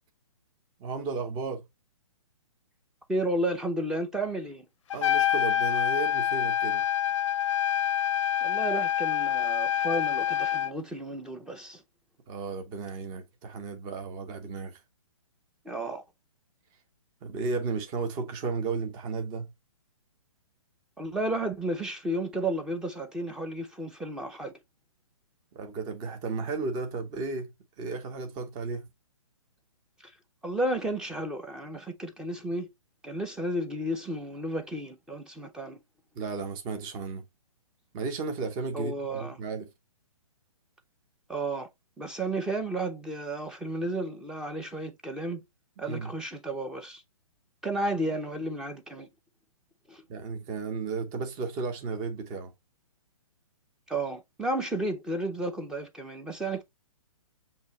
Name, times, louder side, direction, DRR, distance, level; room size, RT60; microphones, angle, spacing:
voice 1, 0.8-1.6 4.9-6.8 12.3-14.8 17.2-19.5 25.5-27.5 27.8-28.9 36.1-37.2 37.9-39.7 45.9-46.1 50.1-52.5, right 4 dB, 25° right, 0.9 m, -34 dB
voice 2, 3.1-4.7 8.4-11.8 15.6-16.0 21.0-24.5 30.0-30.1 30.4-32.7 33.0-35.8 38.7-39.4 41.3-41.7 42.0-45.4 45.8-47.0 47.6-49.1 49.9-50.0 53.9-56.6, right 1 dB, 5° right, 0.5 m, -32 dB
Trumpet, 4.9-10.7, left 10 dB, 60° left, 0.4 m, -26 dB
6.4 x 2.8 x 3.0 m
hypercardioid pair, 140°, 18 cm